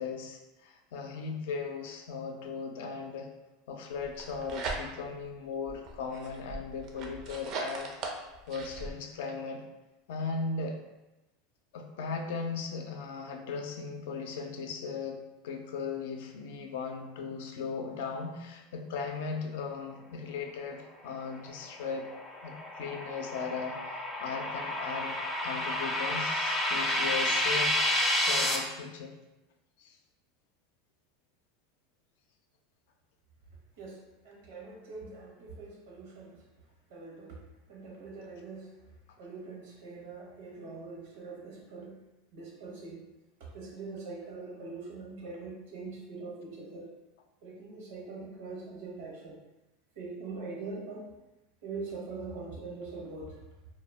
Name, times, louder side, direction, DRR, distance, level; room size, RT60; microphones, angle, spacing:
voice 1, 0.0-3.3 3.7-7.9 8.5-9.6 10.1-10.8 11.7-15.2 15.4-22.1 22.4-27.8 28.2-29.1 29.8-30.0, left 5 dB, 75° left, 3 dB, 0.4 m, -37 dB
sound 1, 4.0-5.2 5.7-8.9, right 3 dB, 50° right, 0.4 m, -39 dB
sound 2, 21.7-28.6, left 1 dB, 15° left, 0.4 m, -30 dB
voice 2, 34.2-36.3 36.9-37.4 37.7-38.7 39.2-42.0 42.3-43.0 43.5-46.9 47.4-49.4 50.0-51.1 51.6-53.3, right 3 dB, 75° right, -2 dB, 0.8 m, -42 dB
2.2 x 2.1 x 3.3 m, 1.0 s
supercardioid pair, 110°, 0 cm